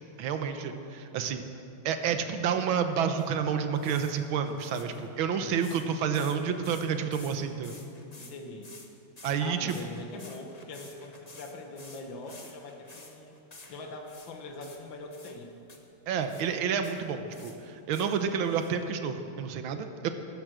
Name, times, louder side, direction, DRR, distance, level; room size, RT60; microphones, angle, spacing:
voice 1, 0.2-1.5 1.9-7.8 9.2-9.8 16.1-20.1, right 7 dB, 80° right, 7 dB, 1.7 m, -29 dB
sound 1, 3.2-3.3 3.7-4.1 4.4-6.4 6.6-7.4 7.6-8.4 8.6-8.9 9.2-14.3 14.6-15.3 15.7-15.8 16.2-16.5 16.8-17.6 17.9-18.7, left 3 dB, 25° left, 1.1 m, -51 dB
voice 2, 5.3-5.8 8.2-8.7 9.4-13.3 13.7-15.5, left 2 dB, 70° left, 3 dB, 2.1 m, -43 dB
14.5 x 14.0 x 6.3 m, 2.7 s
omnidirectional pair, 2.2 m